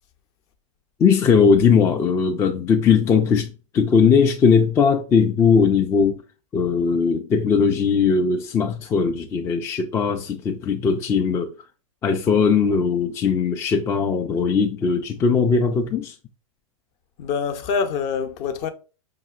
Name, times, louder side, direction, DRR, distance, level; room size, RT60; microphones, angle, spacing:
voice 1, 1.0-6.2 6.5-11.5 12.0-16.2, left 6 dB, 15° left, 0.3 m, -19 dB
voice 2, 17.2-18.7, left 6 dB, 40° left, 0.7 m, -25 dB
5.6 x 2.6 x 2.4 m
hypercardioid pair, 115°, 18 cm